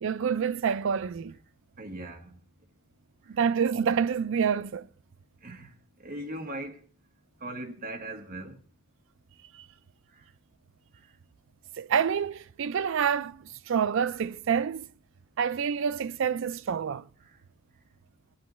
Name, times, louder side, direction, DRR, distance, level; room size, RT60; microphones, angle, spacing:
voice 1, 0.0-1.4 3.3-4.9 9.5-9.7 11.8-14.9 15.4-17.0, right 7 dB, 65° right, 0.4 m, -27 dB
voice 2, 1.8-2.4 5.4-5.7 6.0-6.8 7.4-8.6, right 1 dB, 45° right, 1.4 m, -39 dB
15.0 x 9.2 x 3.1 m
head